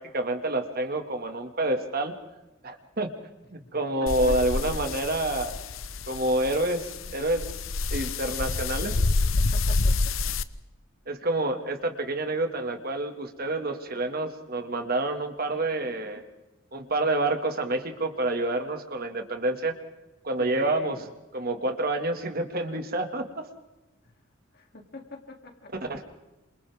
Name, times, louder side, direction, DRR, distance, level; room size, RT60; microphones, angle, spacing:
voice 1, 0.0-2.1 2.6-3.1 3.5-5.5 6.1-7.4 7.9-8.9 11.1-16.2 16.7-19.7 20.2-21.0 21.3-23.5 25.9-26.0, right 2 dB, 45° right, 6 dB, 2.2 m, -28 dB
voice 2, 4.0-4.6 9.4-10.1 20.4-21.1 24.5-25.9, left 2 dB, 50° left, 3 dB, 3.0 m, -43 dB
sound 1, 4.1-10.4, left 3 dB, 85° left, 0.9 m, -28 dB
28.5 x 27.5 x 3.6 m, 1.0 s
head